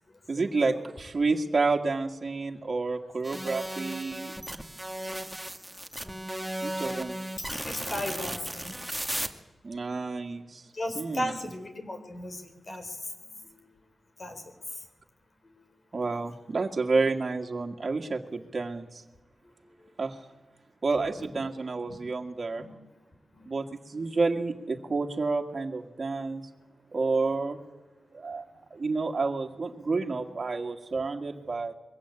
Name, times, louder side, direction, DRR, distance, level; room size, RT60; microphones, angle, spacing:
voice 1, 0.3-4.3 6.6-7.2 9.6-10.6 11.0-11.3 15.9-19.0 20.0-20.2 20.8-22.7 23.4-26.5 26.9-27.6 28.1-28.4 28.7-31.7, right 3 dB, 55° right, 2 dB, 1.9 m, -29 dB
sound 1, 3.2-9.3, right 1 dB, 5° right, 2.0 m, -35 dB
voice 2, 7.5-8.7 10.7-13.7 14.2-14.4 15.5-15.6 21.9-22.0 22.6-22.8 23.3-23.5, left 1 dB, 50° left, 7 dB, 4.0 m, -36 dB
22.5 x 16.0 x 8.6 m, 1.2 s
cardioid pair, 60°, 0 cm